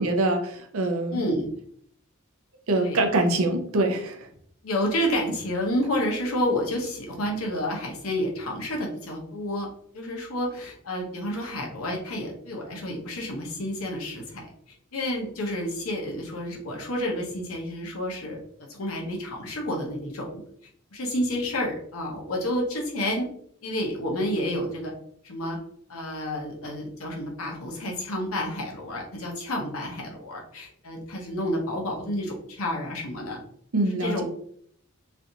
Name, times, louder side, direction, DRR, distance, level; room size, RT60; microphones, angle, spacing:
voice 1, 0.0-1.2 2.7-4.3 33.7-34.2, right 2 dB, 85° right, 4 dB, 0.6 m, -24 dB
voice 2, 1.1-1.5 2.8-3.1 4.6-9.7 9.9-14.5 14.9-18.4 18.7-20.4 20.9-23.3 23.6-24.9 25.2-25.6 25.9-33.4 33.8-34.2, left 1 dB, 85° left, 0 dB, 0.9 m, -30 dB
3.2 x 2.5 x 2.7 m, 0.64 s
head